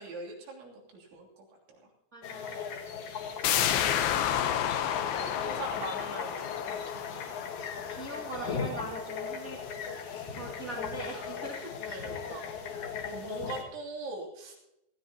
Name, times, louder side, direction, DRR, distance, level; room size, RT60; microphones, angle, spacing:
voice 1, 0.0-1.5 1.8-1.9 3.5-3.7 4.8-7.4 11.9-12.5 13.1-14.5, right 3 dB, 90° right, -2 dB, 5.5 m, -42 dB
voice 2, 2.1-2.6 7.9-9.6 10.0-12.0, right 1 dB, 60° right, -3 dB, 0.8 m, -41 dB
sound 1, 2.2-13.6, left 6 dB, 60° left, 2.1 m, -38 dB
sound 2, 3.4-8.9 9.3-9.4, left 10 dB, 75° left, 2.3 m, -31 dB
19.5 x 16.0 x 2.9 m, 0.87 s
omnidirectional pair, 5.2 m